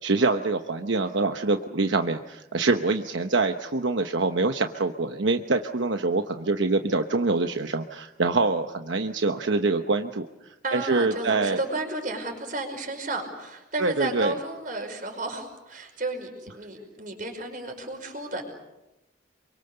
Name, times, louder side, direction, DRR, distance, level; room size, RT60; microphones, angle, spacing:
voice 1, 0.0-10.3 10.7-11.6 13.8-14.3, right 3 dB, 75° right, 6 dB, 1.0 m, -25 dB
voice 2, 10.6-18.4, right 2 dB, 45° right, 4 dB, 5.4 m, -33 dB
27.0 x 24.0 x 6.9 m, 0.97 s
head